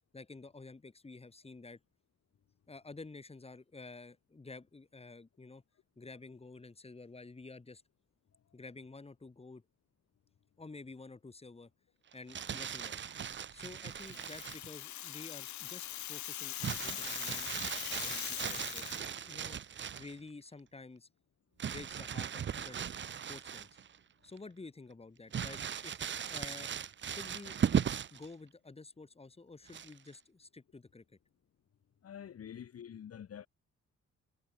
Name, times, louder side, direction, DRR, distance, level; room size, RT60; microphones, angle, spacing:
voice 1, 0.1-1.8 2.7-5.6 6.0-7.8 8.5-9.6 10.6-11.7 12.1-13.1 13.5-17.5 18.0-19.6 20.0-21.1 21.6-22.8 23.3-23.7 24.2-26.0 26.3-26.7 27.0-31.0, left 3 dB, 20° left, 5.8 m, -50 dB
Crumpling crinkling, 12.1-14.7 16.6-20.1 21.6-24.0 24.4-24.5 25.3-28.3 29.7-30.1, right 8 dB, 40° right, 0.7 m, -37 dB
Rattle (instrument), 13.9-19.1, left 14 dB, 75° left, 0.5 m, -41 dB
voice 2, 32.0-33.5, left 9 dB, 55° left, 1.4 m, -47 dB
wide cardioid pair, 165°, 29 cm